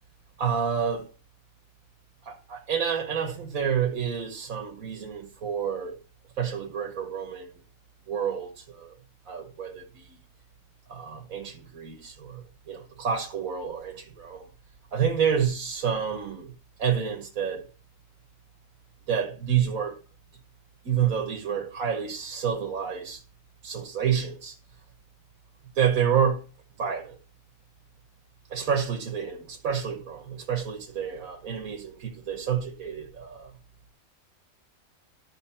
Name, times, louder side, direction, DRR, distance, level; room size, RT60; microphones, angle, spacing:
voice 1, 0.4-1.1 2.2-6.0 6.4-7.5 8.1-9.0 9.3-10.0 10.9-14.5 14.9-16.5 16.8-17.7 19.1-20.0 20.8-23.2 23.6-24.5 25.8-26.4 26.8-27.2 28.5-33.5, right 7 dB, 70° right, 1.6 m, -29 dB
12.0 x 6.4 x 4.3 m
omnidirectional pair, 1.5 m